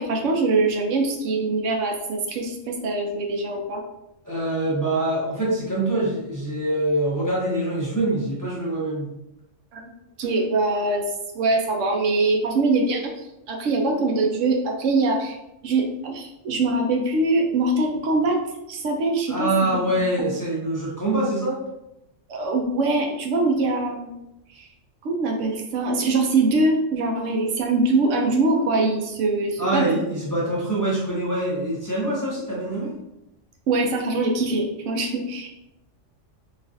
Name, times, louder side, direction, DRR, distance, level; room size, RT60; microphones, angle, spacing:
voice 1, 0.0-3.8 9.7-9.9 10.2-11.0 11.3-13.0 13.5-15.4 15.6-18.4 18.7-19.5 20.2-20.3 22.3-24.2 24.5-24.7 25.0-29.9 33.7-35.5, right 2 dB, 75° right, 1 dB, 0.9 m, -23 dB
voice 2, 4.2-9.1 19.3-21.6 29.6-32.9, right 1 dB, 20° left, -7 dB, 0.7 m, -24 dB
4.0 x 2.4 x 2.6 m, 0.87 s
omnidirectional pair, 1.3 m